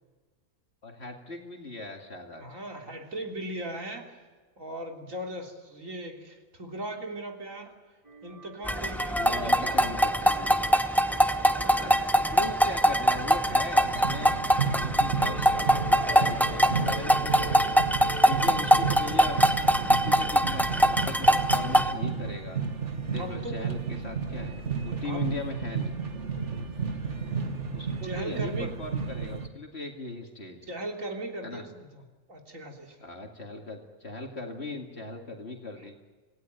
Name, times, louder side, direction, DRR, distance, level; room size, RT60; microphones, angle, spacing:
voice 1, 0.8-2.6 9.2-10.5 11.7-14.4 14.7-17.6 18.3-19.5 19.9-22.6 23.1-25.9 27.7-30.7 31.4-31.6 33.0-35.9, left 2 dB, 55° left, 2 dB, 2.6 m, -39 dB
voice 2, 2.4-4.2 4.6-7.7 8.2-10.1 11.4-12.6 23.2-23.7 25.0-25.2 26.3-26.7 28.0-28.8 30.7-32.0 32.3-33.0 35.8-35.9, right 1 dB, 80° right, 2 dB, 3.8 m, -39 dB
sound 1, 8.0-20.3, right 2 dB, 25° right, 2.7 m, -46 dB
sound 2, 8.7-21.9, equal, ahead, 0.9 m, -23 dB
sound 3, 13.8-29.5, right 5 dB, 60° right, 2.1 m, -32 dB
27.5 x 17.0 x 9.3 m, 1.4 s
omnidirectional pair, 1.4 m